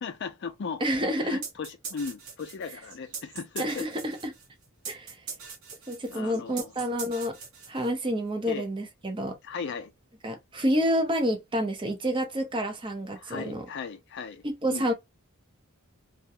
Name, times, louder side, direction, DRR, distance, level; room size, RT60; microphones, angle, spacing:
voice 1, 0.0-0.8 1.2-3.9 6.1-6.7 8.4-8.7 9.4-9.9 13.2-14.4 14.7-14.9, left 5 dB, 50° left, 0.4 m, -37 dB
voice 2, 0.8-1.4 3.6-4.3 4.9-5.2 5.9-7.4 7.7-9.4 10.2-13.6 14.4-14.9, equal, 20° right, 0.5 m, -29 dB
sound 1, 1.4-8.1, right 5 dB, 70° right, 0.9 m, -41 dB
2.3 x 2.1 x 2.8 m
head